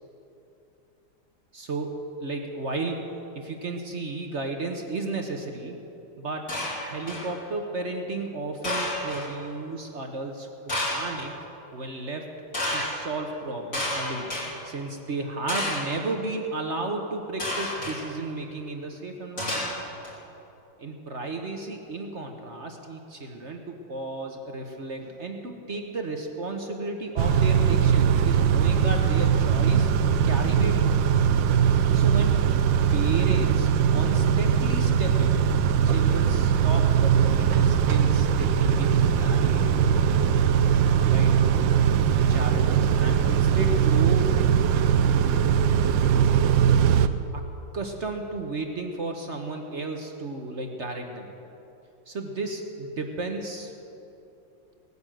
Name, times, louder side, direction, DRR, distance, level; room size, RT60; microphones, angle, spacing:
voice 1, 1.5-3.0 3.3-5.8 6.2-10.5 10.9-11.3 11.7-12.3 12.7-14.3 14.6-19.6 20.8-29.9 30.2-30.9 31.9-32.4 32.9-35.4 35.8-39.7 41.0-41.4 42.1-44.3 47.3-47.4 47.7-51.3 52.1-53.7, right 2 dB, 45° right, 3 dB, 1.0 m, -33 dB
sound 1, 6.5-7.3 8.6-9.3 10.7-11.2 12.5-12.9 13.7-14.4 15.5-16.0 17.4-18.0 19.4-20.1, left 1 dB, 40° left, 4.5 m, -30 dB
Car / Idling / Accelerating revving vroom, 27.2-47.1, right 7 dB, 75° right, 1.3 m, -21 dB
18.5 x 9.6 x 7.6 m, 2.9 s
omnidirectional pair, 2.2 m